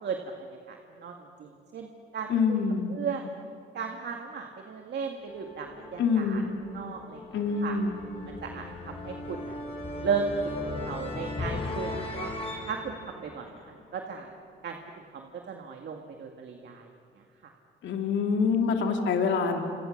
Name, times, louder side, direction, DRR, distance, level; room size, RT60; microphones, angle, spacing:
voice 1, 0.7-2.6 2.9-3.3 3.7-6.4 6.7-7.2 7.6-7.8 8.3-9.6 10.0-10.2 10.6-12.3 12.7-14.3 14.6-14.8 15.1-16.9 17.4-17.5, right 6 dB, 60° right, 3 dB, 2.0 m, -36 dB
voice 2, 2.3-2.9 6.0-6.5 7.3-8.0 17.8-19.6, left 5 dB, 70° left, 3 dB, 2.4 m, -26 dB
sound 1, 5.2-14.3, left 2 dB, 30° left, 5.8 m, -38 dB
27.5 x 27.5 x 6.6 m, 2.4 s
cardioid pair, 90°, 20 cm